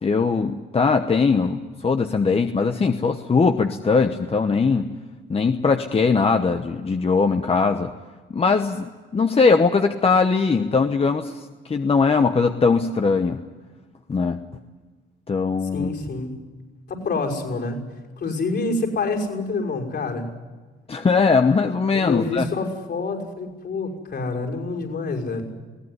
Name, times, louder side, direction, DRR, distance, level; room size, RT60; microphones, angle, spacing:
voice 1, 0.0-4.9 5.3-7.9 8.3-13.4 14.1-14.4 15.3-15.9 20.9-22.5, left 4 dB, 30° left, 6 dB, 1.1 m, -20 dB
voice 2, 15.7-16.3 16.9-17.8 18.2-20.3 21.9-25.4, left 3 dB, 60° left, 0 dB, 6.1 m, -27 dB
22.0 x 17.0 x 9.8 m, 1.4 s
cardioid pair, 90°, 20 cm